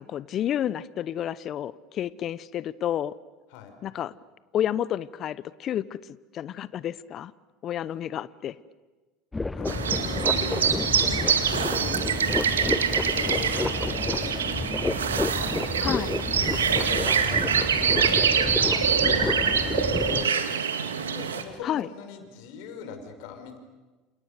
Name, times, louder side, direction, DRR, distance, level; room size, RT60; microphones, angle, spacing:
voice 1, 0.0-3.1 3.8-4.1 4.5-6.0 6.3-7.3 7.6-8.5 15.8-16.1 21.6-21.9, left 10 dB, 45° left, 18 dB, 0.9 m, -30 dB
sound 1, 9.3-20.3, left 3 dB, 15° left, 0.9 m, -30 dB
voice 2, 9.5-10.8 11.5-12.7 13.1-14.7 15.3-15.9 16.5-20.5 21.0-23.6, left 6 dB, 65° left, 6 dB, 5.7 m, -40 dB
sound 2, 9.7-21.4, right 7 dB, 90° right, 2.2 m, -25 dB
29.5 x 28.0 x 6.8 m, 1.2 s
hypercardioid pair, 80°, 0 cm